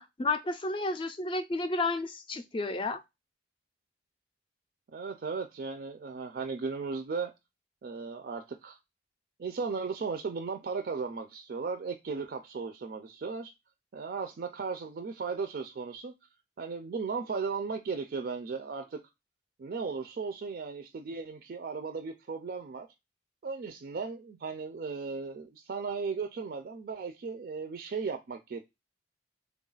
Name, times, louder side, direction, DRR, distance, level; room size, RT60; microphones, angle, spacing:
voice 1, 0.0-3.0, left 3 dB, 30° left, 0.4 m, -31 dB
voice 2, 4.9-7.3 7.8-8.8 9.4-13.5 13.9-16.1 16.6-19.0 19.6-22.9 23.4-28.6, right 4 dB, 55° right, 0.4 m, -36 dB
3.5 x 2.3 x 3.8 m
head